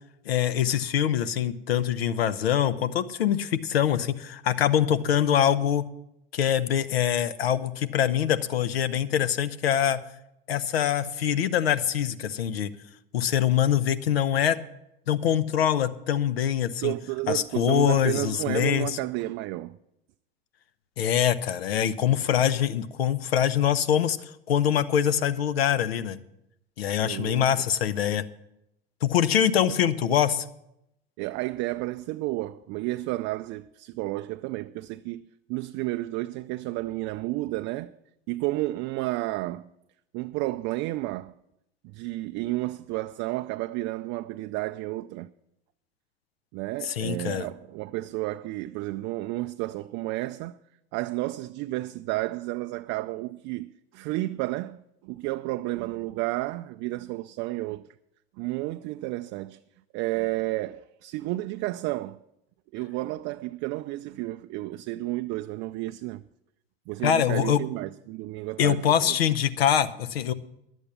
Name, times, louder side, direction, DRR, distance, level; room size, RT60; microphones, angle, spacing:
voice 1, 0.3-5.8 6.3-10.0 10.5-12.7 13.1-14.6 15.1-16.9 17.3-19.0 21.0-26.2 26.8-28.2 29.0-30.5 46.8-47.5 67.0-67.6 68.6-70.3, left 9 dB, 80° left, 0.7 m, -24 dB
voice 2, 16.8-19.8 27.0-27.5 31.2-38.0 38.3-39.7 40.1-41.3 41.8-45.3 46.5-50.5 50.9-57.8 58.4-59.6 59.9-62.2 62.7-66.2 66.9-69.2, right 18 dB, 45° right, 0.4 m, -31 dB
10.5 x 8.0 x 7.2 m
hypercardioid pair, 80°, 30 cm